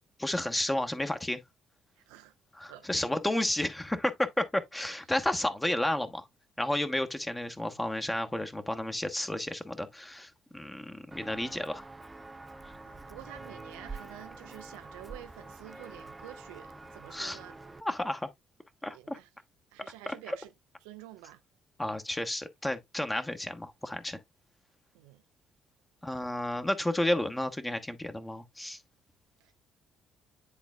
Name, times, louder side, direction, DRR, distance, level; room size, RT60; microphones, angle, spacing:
voice 1, 0.2-1.4 2.5-6.3 6.6-11.8 17.1-17.4 17.8-18.3 18.8-19.2 20.1-20.4 21.8-24.2 26.0-28.8, left 1 dB, 10° left, 1.1 m, -32 dB
Walk footsteps, 11.1-17.8, right 3 dB, 20° right, 0.6 m, -46 dB
voice 2, 12.8-17.6 18.9-19.3 19.7-20.5 20.8-21.4 24.9-25.2 29.4-29.5, right 13 dB, 70° right, 0.4 m, -49 dB
10.5 x 4.0 x 2.3 m
figure-of-eight pair, 45°, 0 cm